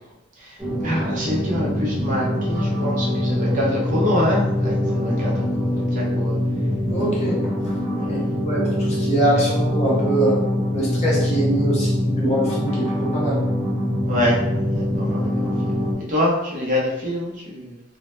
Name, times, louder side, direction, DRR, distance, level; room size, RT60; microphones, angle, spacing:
sound 1, 0.6-15.9, left 1 dB, 5° right, 0.8 m, -23 dB
voice 1, 0.8-5.3 5.6-6.3 8.0-8.3 14.1-14.4 14.7-15.7 16.1-17.8, left 1 dB, 35° right, -4 dB, 0.5 m, -25 dB
voice 2, 6.9-7.5 8.1-8.2 8.4-10.4 10.7-13.5, right 1 dB, 30° left, -5 dB, 0.6 m, -23 dB
2.0 x 2.0 x 3.0 m, 0.90 s
head